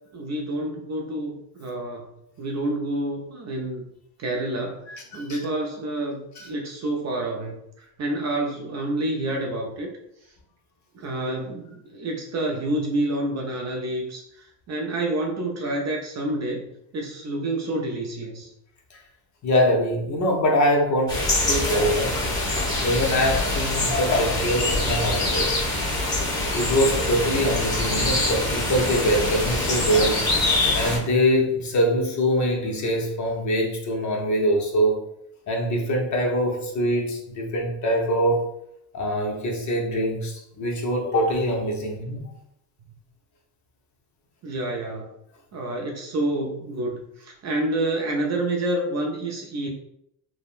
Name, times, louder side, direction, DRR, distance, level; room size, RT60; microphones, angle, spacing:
voice 1, 0.1-3.9 4.2-9.9 10.9-18.5 44.4-45.1 45.5-49.7, right 1 dB, 40° right, 1 dB, 0.4 m, -28 dB
voice 2, 4.9-5.4 6.4-6.5 19.4-21.2 21.5-22.2 22.8-25.5 26.5-30.2 30.7-35.0 35.5-38.5 38.9-42.3, equal, 40° left, 0 dB, 0.7 m, -23 dB
sound 1, 21.1-31.0, left 2 dB, 10° left, 1.1 m, -24 dB
3.5 x 2.1 x 2.4 m, 0.77 s
cardioid pair, 125°, 47 cm